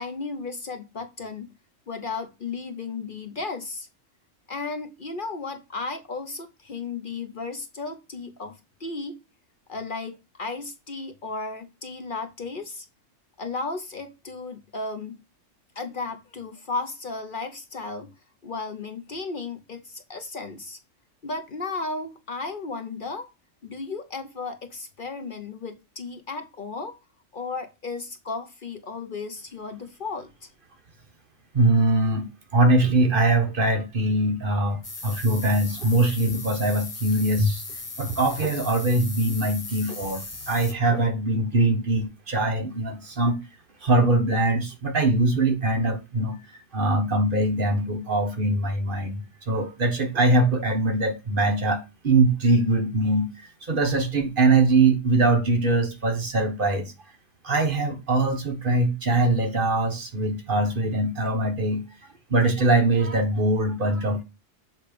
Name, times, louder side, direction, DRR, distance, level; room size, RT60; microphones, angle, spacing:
voice 1, 0.0-1.5 1.9-3.9 4.5-9.2 9.7-12.9 13.4-15.2 15.7-18.1 18.4-20.8 21.2-23.3 23.6-27.0 27.3-30.5, left 3 dB, 45° left, 0.9 m, -34 dB
voice 2, 31.5-37.6 38.0-43.4 43.8-46.4 46.7-56.9 57.4-61.8 62.3-64.2, right 2 dB, 45° right, 1.2 m, -22 dB
sound 1, 34.8-40.7, left 3 dB, 25° left, 0.8 m, -38 dB
7.1 x 3.4 x 5.0 m
omnidirectional pair, 1.3 m